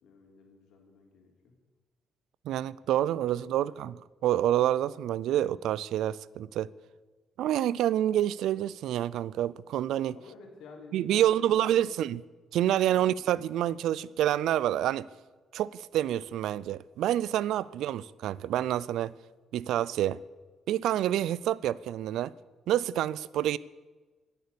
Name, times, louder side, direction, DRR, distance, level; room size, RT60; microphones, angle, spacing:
voice 1, 0.0-1.5 3.5-3.8 10.1-12.0 12.9-13.1 17.7-17.9, left 4 dB, 80° left, 3.4 m, -52 dB
voice 2, 2.4-3.9 4.2-6.7 7.4-10.2 10.9-12.2 12.5-15.1 15.5-19.1 19.5-20.2 20.7-22.3 22.7-23.6, right 12 dB, 85° right, 0.4 m, -28 dB
17.5 x 8.5 x 6.8 m
cardioid pair, 90°, 0 cm